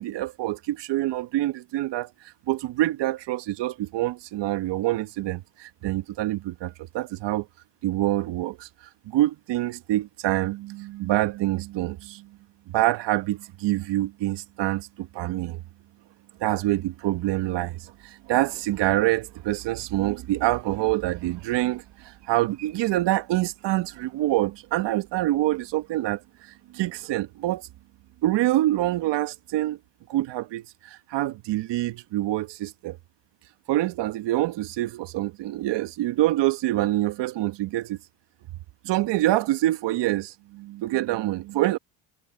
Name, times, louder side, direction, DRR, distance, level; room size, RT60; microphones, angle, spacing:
voice 1, 0.0-2.1 2.5-7.5 7.8-8.7 9.1-12.3 12.7-15.6 16.4-27.6 28.2-29.8 30.1-33.0 33.7-38.0 38.8-41.8, right 16 dB, 60° right, 1.4 m, -26 dB
supercardioid pair, 95°, 49 cm